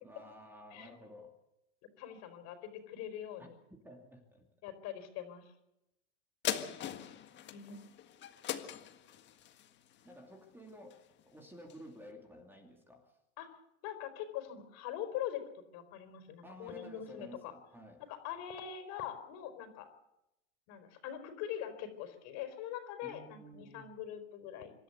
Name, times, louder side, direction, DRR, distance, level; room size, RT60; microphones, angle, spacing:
voice 1, 0.0-1.4 3.4-3.5 3.8-4.4 10.0-13.2 16.4-18.0 23.0-23.9, equal, 5° right, 3 dB, 2.7 m, -53 dB
voice 2, 2.0-3.5 4.6-5.5 7.5-7.8 13.4-13.5 13.8-15.4 15.7-17.5 18.1-19.9 20.7-24.7, left 10 dB, 45° left, 8 dB, 4.6 m, -43 dB
sound 1, 6.4-11.2 11.7-11.8, left 10 dB, 30° left, 1.7 m, -41 dB
26.5 x 13.0 x 8.2 m, 0.87 s
supercardioid pair, 140°, 37 cm